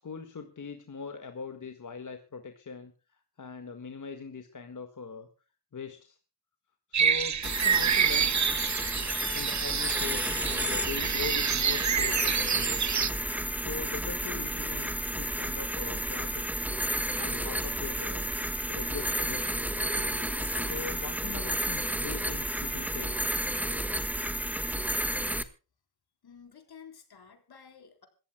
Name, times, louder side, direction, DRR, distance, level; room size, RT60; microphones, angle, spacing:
voice 1, 0.0-2.9 3.4-5.3 5.7-6.2 6.9-8.3 9.3-12.8 13.6-14.9 15.2-16.6 17.2-18.3 18.7-19.6 20.6-23.3, left 5 dB, 50° left, 6 dB, 1.7 m, -41 dB
sound 1, 6.9-13.1, right 8 dB, 45° right, 0.7 m, -28 dB
sound 2, 7.4-25.4, right 1 dB, 5° right, 1.4 m, -32 dB
voice 2, 26.2-28.1, left 7 dB, 65° left, 6 dB, 3.9 m, -52 dB
26.5 x 14.5 x 2.2 m, 0.35 s
cardioid pair, 90°, 40 cm